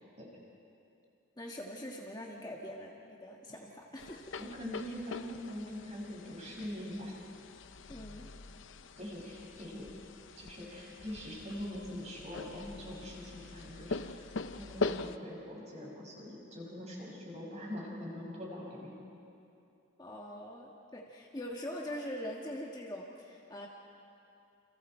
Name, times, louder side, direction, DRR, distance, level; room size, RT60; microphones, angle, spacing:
voice 1, 1.4-4.3 7.9-8.3 20.0-23.7, left 1 dB, 20° left, -2 dB, 1.6 m, -43 dB
sound 1, 4.0-15.2, left 3 dB, 65° left, 0.7 m, -42 dB
voice 2, 4.4-7.1 9.0-9.9 10.3-14.2 14.6-18.9, left 1 dB, 30° right, -3 dB, 6.0 m, -43 dB
30.0 x 28.5 x 4.5 m, 2.7 s
head